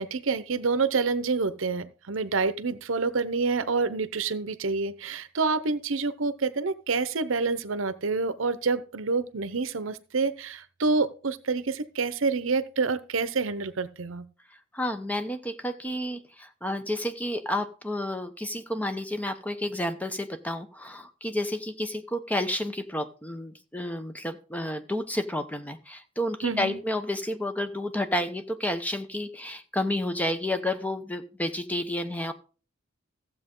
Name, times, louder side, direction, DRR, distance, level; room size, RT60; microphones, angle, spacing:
voice 1, 0.0-14.2 26.4-26.8, right 4 dB, 75° right, 0.8 m, -27 dB
voice 2, 14.7-32.3, left 1 dB, 10° left, 0.9 m, -31 dB
15.0 x 7.7 x 3.8 m
head